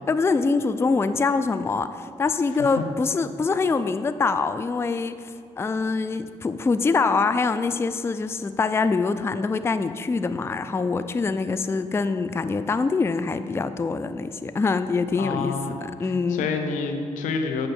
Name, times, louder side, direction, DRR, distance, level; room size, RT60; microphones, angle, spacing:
voice 1, 0.1-16.5, left 4 dB, 20° left, 11 dB, 0.3 m, -24 dB
voice 2, 15.1-17.7, left 4 dB, 85° left, 6 dB, 0.8 m, -29 dB
8.0 x 6.2 x 4.4 m, 2.5 s
supercardioid pair, 70°, 13 cm